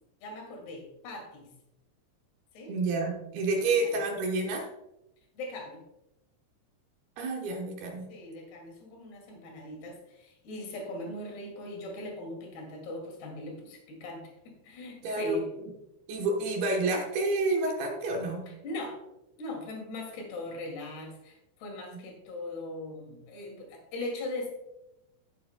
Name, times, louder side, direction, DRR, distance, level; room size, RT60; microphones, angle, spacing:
voice 1, 0.2-1.5 2.5-2.7 3.5-4.0 5.4-5.8 8.1-15.5 18.5-19.0 19.4-24.5, left 2 dB, 60° left, 1 dB, 4.0 m, -40 dB
voice 2, 2.7-4.7 7.2-8.1 15.0-15.4 16.1-18.5, right 2 dB, 75° right, 1 dB, 2.3 m, -29 dB
16.5 x 7.6 x 2.2 m, 0.89 s
omnidirectional pair, 5.9 m